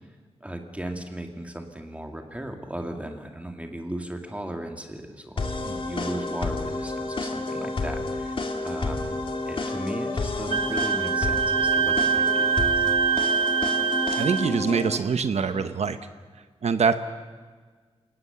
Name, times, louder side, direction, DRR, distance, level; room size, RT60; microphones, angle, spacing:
voice 1, 0.4-8.4 8.6-12.9, right 1 dB, 10° right, 4 dB, 2.1 m, -36 dB
sound 1, 5.4-15.0, left 2 dB, 50° left, 2.2 m, -30 dB
Wind instrument woodwind instrument, 10.5-14.5, right 6 dB, 60° right, 0.7 m, -24 dB
voice 2, 14.2-16.0 16.6-17.0, right 5 dB, 80° right, 10 dB, 1.0 m, -24 dB
28.5 x 18.5 x 7.0 m, 1.5 s
wide cardioid pair, 110°, 11 cm